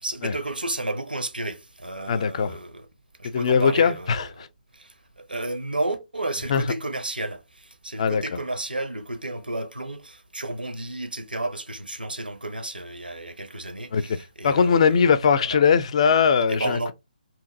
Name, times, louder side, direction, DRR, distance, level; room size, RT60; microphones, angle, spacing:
voice 1, 0.0-2.9 3.2-4.5 4.7-15.1 15.4-15.6 16.5-16.9, right 2 dB, 90° right, 0.8 m, -32 dB
voice 2, 2.1-2.6 3.3-4.3 6.5-6.6 8.0-8.2 13.9-14.0 14.4-16.9, left 6 dB, 40° left, 0.4 m, -20 dB
2.9 x 2.5 x 3.7 m
figure-of-eight pair, 140°, 5 cm